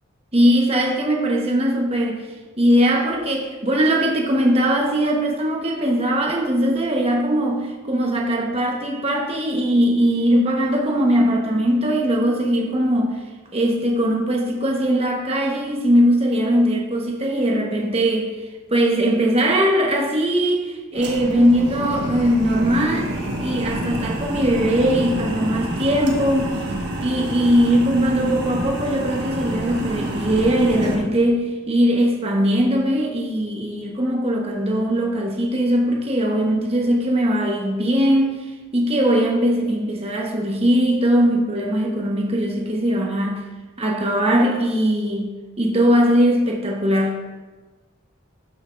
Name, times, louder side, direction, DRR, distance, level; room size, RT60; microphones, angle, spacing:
voice 1, 0.3-2.2 2.6-13.2 13.5-18.3 18.7-23.1 23.4-26.6 27.0-38.4 38.7-43.4 43.8-45.3 45.6-47.2, equal, 30° right, 1 dB, 1.0 m, -20 dB
sound 1, 20.9-31.0, right 1 dB, 55° right, 1.4 m, -28 dB
12.0 x 6.2 x 2.5 m, 1.2 s
head